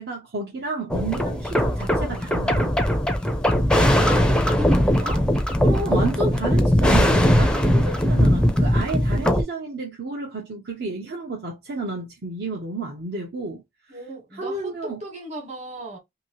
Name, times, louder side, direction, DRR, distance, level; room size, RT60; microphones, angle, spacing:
voice 1, 0.0-2.7 5.6-13.6 13.9-14.0 14.3-15.0, right 3 dB, 60° right, 0.8 m, -31 dB
sound 1, 0.9-9.4, equal, 5° left, 0.5 m, -20 dB
voice 2, 3.8-5.3 13.9-16.0, equal, 40° right, 1.3 m, -36 dB
2.9 x 2.8 x 2.9 m
head